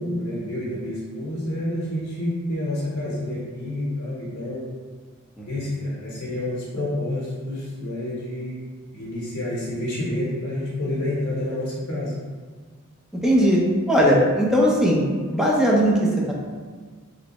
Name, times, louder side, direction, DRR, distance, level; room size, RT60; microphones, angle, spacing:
voice 1, 0.0-4.6 5.4-8.6 8.9-12.1, left 1 dB, 60° left, -7 dB, 0.8 m, -28 dB
voice 2, 13.2-13.6 13.9-16.3, equal, ahead, -4 dB, 0.5 m, -19 dB
3.2 x 3.1 x 2.9 m, 1.5 s
head